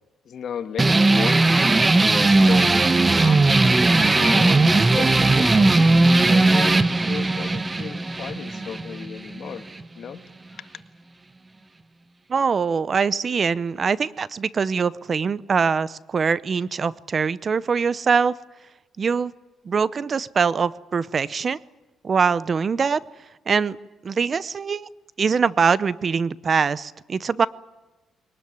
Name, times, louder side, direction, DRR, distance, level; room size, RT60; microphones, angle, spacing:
voice 1, 0.2-1.7 2.2-3.4 4.2-5.8 6.1-9.7 9.9-10.2 10.5-10.7, left 8 dB, 60° left, 8 dB, 1.7 m, -35 dB
sound 1, 0.8-9.8, right 2 dB, 20° right, 1.1 m, -18 dB
voice 2, 12.3-18.3 19.0-19.3 19.6-21.6 22.0-23.0 23.5-23.8 24.0-24.9 25.2-27.5, right 5 dB, 40° right, 18 dB, 0.7 m, -23 dB
22.0 x 19.5 x 9.6 m, 1.1 s
cardioid pair, 90°, 0 cm